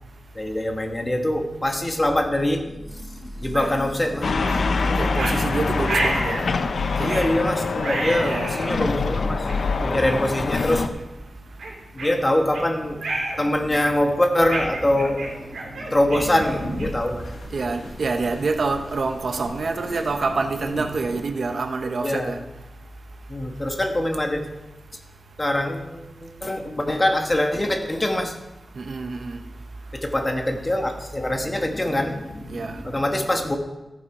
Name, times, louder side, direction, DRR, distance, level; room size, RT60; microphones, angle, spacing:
voice 1, 0.3-5.5 7.0-11.0 11.9-13.0 13.4-17.3 20.6-20.8 22.0-22.4 23.3-24.5 25.4-28.4 29.9-33.6, left 1 dB, 20° left, 4 dB, 1.3 m, -24 dB
sound 1, 3.5-3.7 4.4-4.6 5.2-5.4 5.9-6.5 7.1-7.3 7.8-8.7 9.5-9.6 10.3-10.5 10.9-11.0 11.6-12.7 13.0-13.4 13.7-14.0 14.5-17.1, right 2 dB, 80° right, 3.3 m, -30 dB
sound 2, 4.2-10.9, left 4 dB, 65° left, 0.7 m, -25 dB
voice 2, 5.0-6.3 7.0-7.2 8.2-8.8 17.5-22.4 28.8-29.4 32.5-32.8, right 4 dB, 55° right, 7 dB, 0.8 m, -27 dB
sound 3, 16.1-21.2, left 1 dB, 85° left, 2.5 m, -37 dB
14.0 x 8.0 x 4.8 m, 1.0 s
wide cardioid pair, 130°, 0 cm